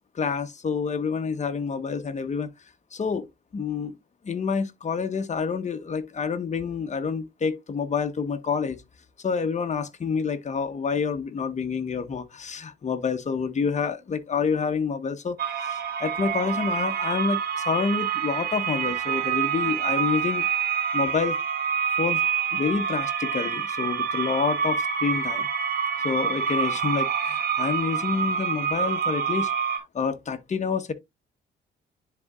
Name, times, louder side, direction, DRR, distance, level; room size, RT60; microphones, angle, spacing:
voice 1, 0.1-2.5 2.9-3.3 3.5-4.0 4.2-8.8 9.2-20.4 20.7-21.4 22.0-22.2 22.5-25.5 26.0-29.5 29.9-30.9, left 5 dB, 35° left, 1.1 m, -28 dB
sound 1, 15.4-29.8, right 7 dB, 50° right, 1.5 m, -27 dB
10.5 x 3.8 x 2.4 m
cardioid pair, 90°, 20 cm